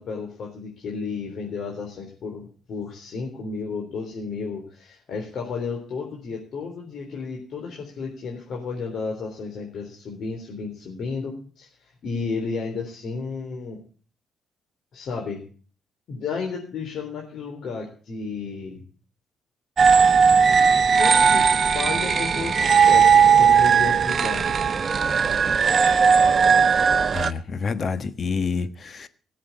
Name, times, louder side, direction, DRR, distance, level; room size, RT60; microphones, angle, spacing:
voice 1, 0.0-11.7 12.0-13.8 14.9-15.4 16.1-18.8 21.0-24.6, left 4 dB, 65° left, 3.7 m, -32 dB
sound 1, 19.8-27.3, right 6 dB, 45° right, 0.9 m, -17 dB
voice 2, 27.1-29.1, left 5 dB, 45° left, 1.3 m, -28 dB
17.5 x 7.6 x 8.4 m
cardioid pair, 90°, 0 cm